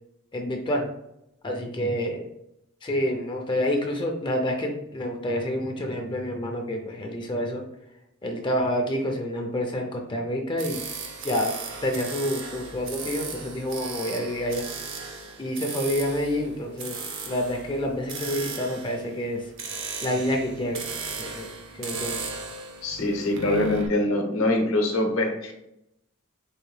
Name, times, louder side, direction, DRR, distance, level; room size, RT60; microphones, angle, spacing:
voice 1, 0.3-0.9 1.4-2.2 2.8-7.6 8.2-10.8 11.2-11.5 11.8-14.6 15.4-19.5 20.0-20.8 21.2-21.5 21.7-22.2, equal, 20° left, 2 dB, 0.4 m, -28 dB
sound 1, 10.6-23.9, right 4 dB, 60° right, 0.7 m, -36 dB
voice 2, 22.8-25.5, left 1 dB, 70° left, 3 dB, 0.8 m, -24 dB
4.8 x 2.5 x 3.2 m, 0.83 s
head